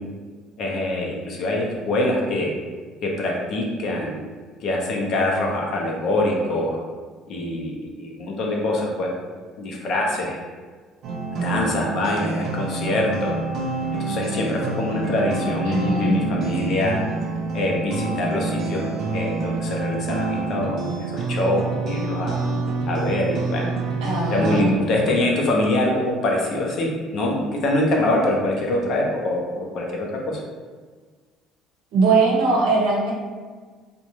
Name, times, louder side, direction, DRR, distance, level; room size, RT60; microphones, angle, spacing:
voice 1, 0.6-2.5 3.0-4.2 4.6-6.8 7.3-9.1 9.6-10.4 11.4-13.3 14.0-17.0 17.5-20.8 21.1-22.4 22.9-23.6 24.3-30.0 30.3-30.4, left 1 dB, 50° left, -1 dB, 0.5 m, -24 dB
sound 1, 11.0-24.6, right 3 dB, 50° right, 0.3 m, -27 dB
voice 2, 15.7-16.6 24.0-24.7 31.9-33.1, right 3 dB, 85° right, -2 dB, 0.7 m, -21 dB
2.5 x 2.1 x 3.0 m, 1.5 s
cardioid pair, 150°, 0 cm